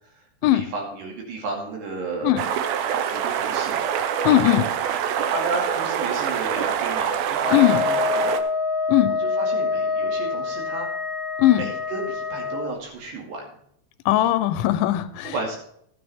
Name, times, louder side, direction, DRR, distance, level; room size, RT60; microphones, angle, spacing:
voice 1, 0.5-2.5 3.1-3.8 5.3-8.3 9.1-10.9 11.5-13.5 15.3-15.6, right 3 dB, 70° right, 0 dB, 4.3 m, -32 dB
sound 1, 2.4-8.4, right 8 dB, 85° right, 2.0 m, -25 dB
voice 2, 4.2-4.7 7.5-7.8 8.9-9.1 11.4-11.6 14.1-15.3, left 14 dB, 90° left, 11 dB, 3.1 m, -19 dB
Wind instrument woodwind instrument, 7.4-12.7, left 4 dB, 40° left, 1.0 m, -26 dB
14.5 x 9.4 x 3.6 m, 0.69 s
omnidirectional pair, 5.2 m